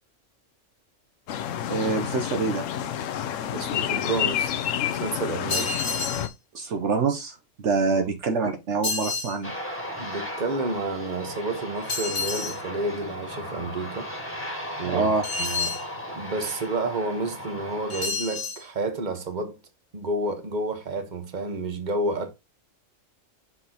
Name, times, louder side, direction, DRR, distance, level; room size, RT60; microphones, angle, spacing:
sound 1, 1.3-6.3, left 10 dB, 80° left, 1.0 m, -29 dB
voice 1, 1.7-2.7 6.5-9.5 14.8-15.3, right 4 dB, 65° right, 1.1 m, -26 dB
voice 2, 3.5-4.5 4.9-5.8 7.9-8.1 10.0-14.1 14.8-15.1 15.4-15.8 16.2-19.6 19.9-22.3, right 2 dB, 40° right, 1.3 m, -30 dB
sound 2, 5.5-6.3 8.8-9.4 11.9-12.6 15.2-15.9 17.9-18.6, left 4 dB, 50° left, 1.7 m, -29 dB
Aircraft, 9.4-18.1, equal, 10° left, 1.7 m, -36 dB
6.1 x 5.9 x 2.9 m
omnidirectional pair, 1.3 m